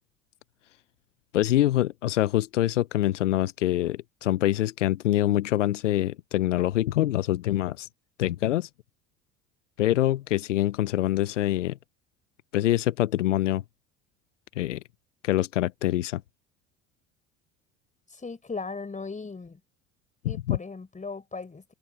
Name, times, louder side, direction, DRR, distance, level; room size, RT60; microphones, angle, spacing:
voice 1, 1.3-7.9 8.2-8.7 9.8-11.8 12.5-13.6 14.6-14.8 15.2-16.2 20.5-20.6, left 14 dB, 90° left, 0.7 m, -25 dB
voice 2, 18.1-19.6 20.2-21.7, left 4 dB, 20° left, 4.8 m, -37 dB
hypercardioid pair, 70°, 36 cm